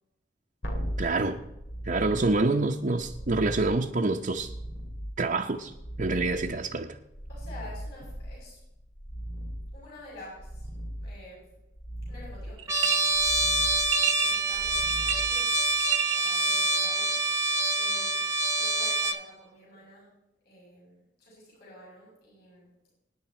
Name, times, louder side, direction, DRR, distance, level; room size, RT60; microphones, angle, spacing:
sound 1, 0.6-15.9 19.1-19.2, equal, 85° left, 2.4 m, -39 dB
voice 1, 1.0-1.4 1.9-4.5 5.2-5.7 6.0-6.9, right 3 dB, 45° right, 1 dB, 0.8 m, -26 dB
voice 2, 7.3-8.6 9.7-10.7 11.0-11.5 12.1-13.4 14.0-15.6 16.1-17.1 17.7-18.2 18.5-20.1 20.4-22.9, left 1 dB, 55° left, -5 dB, 6.9 m, -49 dB
sound 2, 12.6-13.0 13.9-14.4 14.9-15.5 15.8-16.3, right 12 dB, 80° right, 1.1 m, -29 dB
Trumpet, 12.7-19.2, right 2 dB, 15° right, 1.0 m, -26 dB
24.0 x 10.0 x 4.4 m, 0.91 s
head